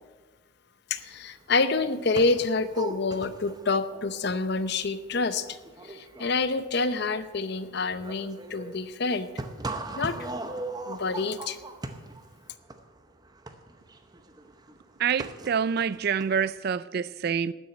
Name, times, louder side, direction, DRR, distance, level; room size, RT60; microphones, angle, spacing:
voice 1, 0.9-5.6 5.8-9.3 10.0-10.2 10.9-11.6, left 3 dB, 50° left, 0.7 m, -27 dB
sound 1, 1.1-1.2 1.4-16.5, right 2 dB, 20° right, 0.7 m, -40 dB
voice 2, 15.0-17.5, right 7 dB, 45° right, 0.3 m, -27 dB
12.5 x 7.3 x 8.9 m
head